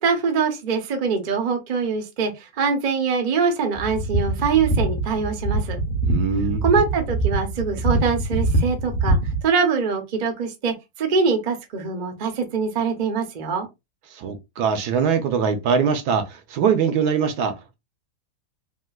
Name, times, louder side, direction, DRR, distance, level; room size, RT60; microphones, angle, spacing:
voice 1, 0.0-5.8 6.6-13.7, right 5 dB, 45° right, 0.6 m, -23 dB
sound 1, 3.8-9.4, right 2 dB, 35° left, 0.8 m, -23 dB
voice 2, 6.0-6.6 14.1-17.8, right 6 dB, 75° right, 1.2 m, -22 dB
3.6 x 2.4 x 2.3 m
omnidirectional pair, 1.7 m